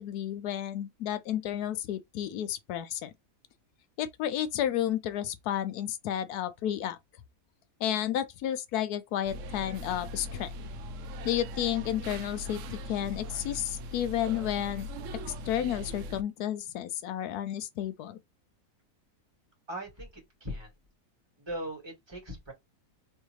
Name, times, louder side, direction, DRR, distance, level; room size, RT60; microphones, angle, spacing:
voice 1, 0.0-3.1 4.0-7.0 7.8-10.5 11.2-14.9 15.5-18.2, left 11 dB, 75° left, 1.1 m, -32 dB
sound 1, 9.3-16.2, left 1 dB, 65° right, 0.8 m, -40 dB
voice 2, 19.7-20.7 21.4-22.5, equal, 15° right, 2.2 m, -39 dB
3.5 x 3.2 x 3.1 m
omnidirectional pair, 1.7 m